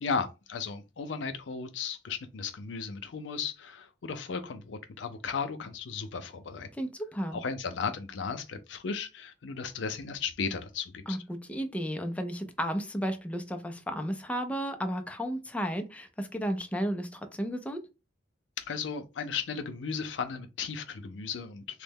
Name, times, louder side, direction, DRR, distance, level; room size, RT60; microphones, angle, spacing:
voice 1, 0.0-6.7 7.3-11.2 18.6-21.8, left 5 dB, 85° left, 0.5 m, -35 dB
voice 2, 6.8-7.4 11.1-17.8, equal, 10° left, 0.4 m, -33 dB
3.1 x 2.0 x 3.4 m
head